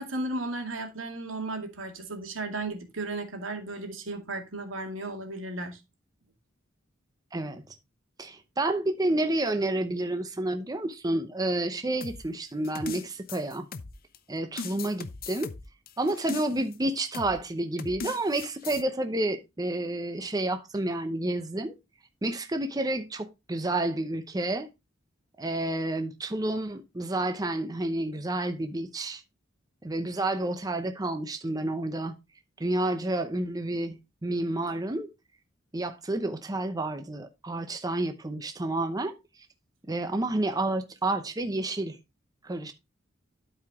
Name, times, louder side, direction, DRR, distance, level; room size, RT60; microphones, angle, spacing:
voice 1, 0.0-5.8, right 2 dB, 90° right, 2.2 m, -35 dB
voice 2, 7.3-7.6 8.2-13.7 14.3-15.5 16.0-21.8 22.2-24.7 25.4-29.2 29.8-32.1 32.6-35.1 35.7-39.2 39.9-42.0 42.4-42.7, right 2 dB, 20° right, 0.7 m, -30 dB
sound 1, 12.0-14.2 14.6-16.8 17.1-17.4 17.8-18.8, left 4 dB, 50° left, 0.7 m, -39 dB
12.0 x 4.8 x 3.6 m
head